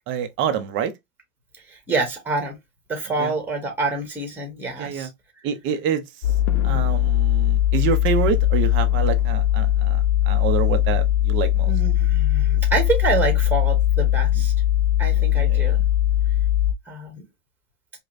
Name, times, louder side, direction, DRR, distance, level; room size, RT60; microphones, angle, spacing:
voice 1, 0.1-0.9 3.2-3.3 4.8-5.1 5.4-6.0 6.6-11.7 15.3-15.6, right 8 dB, 30° right, 0.6 m, -26 dB
voice 2, 1.7-2.6 2.9-5.1 11.7-14.5 15.0-15.8 16.9-17.2, right 3 dB, 5° right, 1.1 m, -27 dB
sound 1, 6.2-16.7, left 12 dB, 35° left, 0.4 m, -20 dB
4.9 x 2.2 x 2.5 m
supercardioid pair, 135°, 41 cm